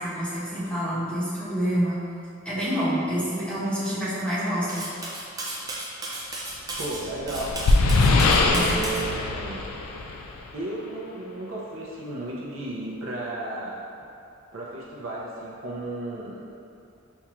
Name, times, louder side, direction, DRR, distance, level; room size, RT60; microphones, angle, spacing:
voice 1, 0.0-2.0 2.4-4.9 8.5-8.8, equal, 5° left, -12 dB, 0.9 m, -27 dB
Cutlery silverware, 4.7-9.1, right 2 dB, 15° right, 0.4 m, -34 dB
sound 1, 6.8-10.5, left 3 dB, 85° left, 0.3 m, -22 dB
voice 2, 6.8-7.6 8.5-9.6 10.5-13.8 14.5-16.4, right 2 dB, 70° right, -4 dB, 0.6 m, -34 dB
4.5 x 2.4 x 2.9 m, 2.6 s
head